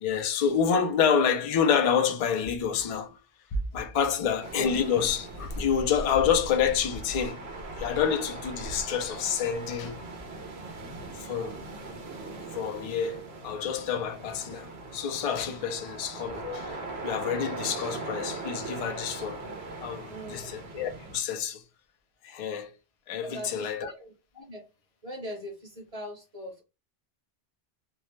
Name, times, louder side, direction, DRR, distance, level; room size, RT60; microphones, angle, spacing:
voice 1, 0.0-3.2 3.5-7.4 7.8-10.0 11.2-11.6 12.5-19.4 19.8-21.6 22.2-22.7 23.1-23.9, left 7 dB, 55° left, 0.4 m, -28 dB
sound 1, 4.4-21.2, right 2 dB, 85° right, 1.0 m, -39 dB
voice 2, 20.1-20.5 23.2-24.7 25.0-26.6, equal, 40° right, 0.9 m, -41 dB
2.6 x 2.0 x 3.0 m
omnidirectional pair, 1.1 m